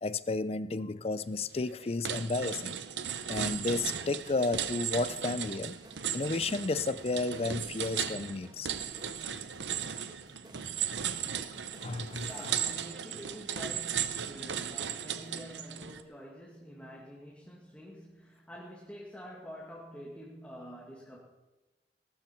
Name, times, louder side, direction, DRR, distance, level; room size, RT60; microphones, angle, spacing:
voice 1, 0.0-2.8 3.3-5.8 6.1-8.7 11.1-11.2 11.8-12.5, left 3 dB, 35° left, 16 dB, 0.5 m, -32 dB
sound 1, 1.4-1.7 2.0-16.0, right 8 dB, 90° right, 0.8 m, -36 dB
sound 2, 3.5-12.7, right 2 dB, 25° right, 1.4 m, -54 dB
voice 2, 12.2-21.2, equal, 10° left, -5 dB, 2.3 m, -47 dB
18.5 x 12.5 x 4.6 m, 1.1 s
head